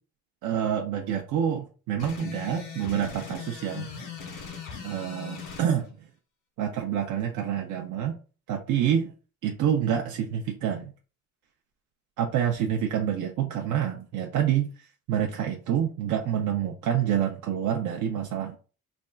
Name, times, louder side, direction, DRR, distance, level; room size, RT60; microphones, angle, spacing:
voice 1, 0.4-3.9 4.8-5.9 6.6-8.2 8.5-9.1 9.4-10.9 12.2-18.6, right 9 dB, 80° right, 2 dB, 0.6 m, -27 dB
sound 1, 2.0-5.7, left 6 dB, 90° left, 1.6 m, -39 dB
3.4 x 2.3 x 3.8 m, 0.36 s
cardioid pair, 90°, 30 cm